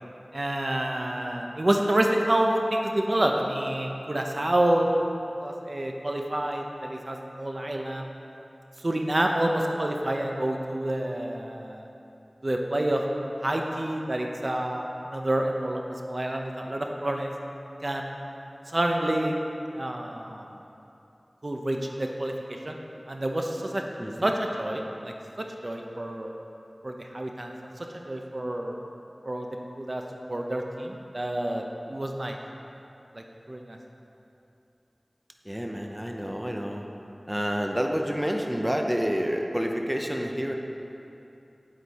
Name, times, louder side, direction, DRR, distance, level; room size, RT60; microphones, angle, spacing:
voice 1, 0.3-5.1 5.4-8.1 8.8-11.9 12.4-13.0 13.4-17.3 17.8-18.1 18.7-19.4 19.7-20.4 21.4-22.8 23.1-23.8 24.2-25.1 25.6-26.3 26.8-27.5 28.1-28.8 29.2-29.5 29.8-30.0 30.3-31.6 31.9-32.4 33.1-33.8, right 1 dB, 50° right, 2 dB, 0.7 m, -28 dB
voice 2, 24.0-24.3 35.4-36.8 37.3-40.5, equal, 10° right, 2 dB, 0.7 m, -29 dB
9.5 x 8.3 x 4.2 m, 2.8 s
wide cardioid pair, 60°, 0 cm